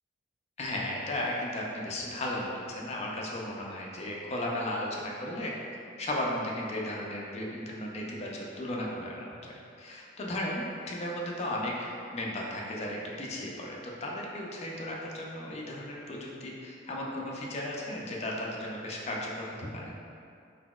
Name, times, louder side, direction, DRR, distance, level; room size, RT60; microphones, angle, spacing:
voice 1, 0.6-5.5 6.0-9.5 9.8-19.9, left 1 dB, 35° left, -3 dB, 0.4 m, -35 dB
3.9 x 2.0 x 2.3 m, 2.4 s
head